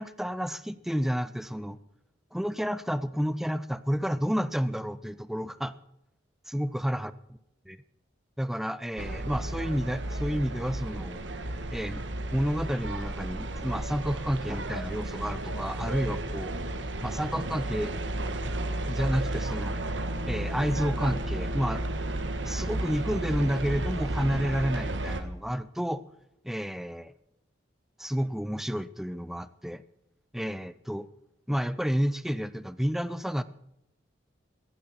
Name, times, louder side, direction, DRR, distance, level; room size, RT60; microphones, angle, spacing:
voice 1, 0.0-1.8 2.3-5.7 6.5-7.1 7.7-7.8 8.4-11.2 11.7-12.0 12.3-16.5 17.0-17.9 18.9-19.7 20.2-21.8 22.5-26.0 26.4-27.1 28.0-29.8 30.3-31.1 31.5-33.4, equal, ahead, 15 dB, 0.6 m, -30 dB
sound 1, 9.0-25.2, right 1 dB, 75° right, 1.6 m, -33 dB
16.5 x 15.0 x 4.3 m, 0.83 s
head